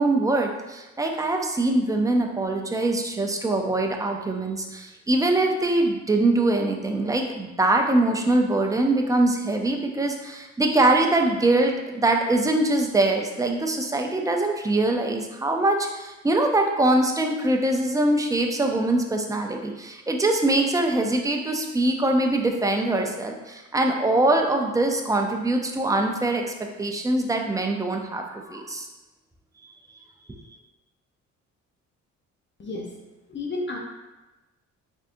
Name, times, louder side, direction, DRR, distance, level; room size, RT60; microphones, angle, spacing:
voice 1, 0.0-26.5 26.8-28.9 29.9-30.0 30.3-30.4, right 2 dB, 10° right, 2 dB, 0.5 m, -23 dB
voice 2, 32.6-32.9 33.3-33.8, left 2 dB, 40° left, 0 dB, 0.7 m, -31 dB
4.0 x 3.6 x 2.6 m, 1.1 s
cardioid pair, 90°, 30 cm